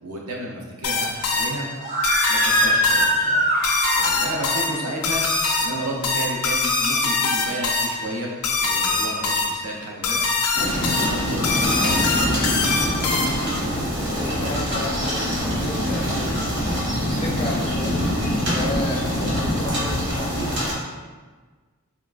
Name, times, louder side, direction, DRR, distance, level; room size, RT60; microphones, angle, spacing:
voice 1, 0.0-1.7 2.3-3.5 3.9-5.3 5.6-8.3 8.6-10.2 10.6-12.9, right 1 dB, 80° right, -2 dB, 0.6 m, -32 dB
sound 1, 0.8-13.6, left 3 dB, 85° left, 0.4 m, -24 dB
Screaming, 1.8-4.6, equal, 35° right, 0.4 m, -22 dB
sound 2, 10.5-20.7, equal, 50° right, 0.9 m, -24 dB
voice 2, 13.8-16.3 17.0-20.5, left 2 dB, 25° left, -2 dB, 0.4 m, -34 dB
3.5 x 2.3 x 2.3 m, 1.4 s
head